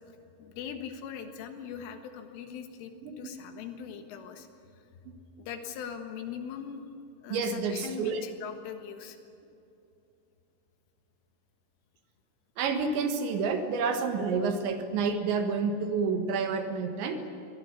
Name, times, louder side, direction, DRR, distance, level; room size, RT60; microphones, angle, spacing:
voice 1, 0.1-4.5 5.4-6.8 7.2-9.2, left 7 dB, 85° left, 6 dB, 4.1 m, -41 dB
voice 2, 7.3-8.2 12.6-17.2, right 5 dB, 75° right, 6 dB, 3.7 m, -29 dB
23.0 x 18.0 x 9.7 m, 2.7 s
omnidirectional pair, 5.6 m